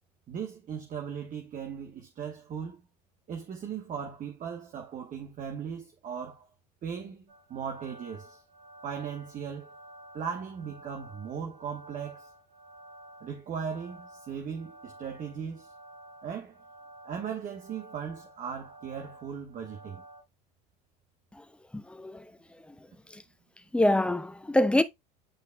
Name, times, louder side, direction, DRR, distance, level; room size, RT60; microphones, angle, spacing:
voice 1, 0.3-2.8 3.3-6.5 6.8-8.4 8.8-9.7 10.1-12.3 13.2-15.7 16.2-16.6 17.0-20.0, right 7 dB, 40° right, 1.2 m, -38 dB
sound 1, 7.3-20.2, right 1 dB, 85° right, 4.7 m, -52 dB
voice 2, 21.7-22.3 22.7-22.8 23.1-23.2 23.7-24.8, left 1 dB, 5° left, 0.7 m, -25 dB
10.5 x 4.6 x 2.3 m
hypercardioid pair, 75°, 21 cm